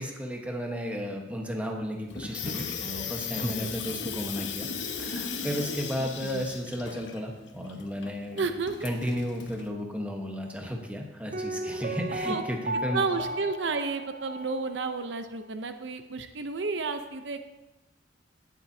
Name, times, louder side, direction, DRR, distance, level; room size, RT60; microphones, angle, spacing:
voice 1, 0.0-4.7 5.0-8.4 8.8-13.0, equal, 10° right, 1 dB, 1.2 m, -33 dB
Water tap faucet / Sink (filling or washing), 2.1-9.7, left 6 dB, 80° left, 1.0 m, -37 dB
voice 2, 8.4-8.9 12.3-12.4 12.9-17.4, right 4 dB, 85° right, 8 dB, 0.7 m, -31 dB
Piano, 11.3-15.1 15.4-15.5, right 1 dB, 45° right, 0.5 m, -35 dB
18.0 x 7.3 x 2.8 m, 1.0 s
head